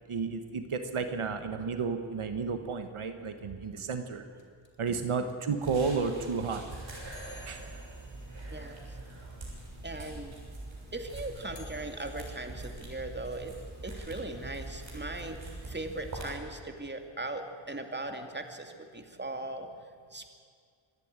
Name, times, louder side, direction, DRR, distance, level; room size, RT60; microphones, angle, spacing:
voice 1, 0.1-4.2 4.8-6.6 7.5-7.6, right 5 dB, 85° right, 7 dB, 1.5 m, -32 dB
sound 1, 4.4-9.5 9.8-9.9 10.0-12.4, left 4 dB, 65° left, 2.8 m, -56 dB
sound 2, 5.6-16.3, right 2 dB, 70° right, 6.9 m, -43 dB
voice 2, 9.8-10.3 10.9-13.5 13.8-15.4 15.7-18.7 18.9-19.7 20.1-20.3, right 2 dB, 20° right, 5 dB, 2.6 m, -38 dB
26.0 x 11.0 x 9.7 m, 2.1 s
cardioid pair, 55°, 48 cm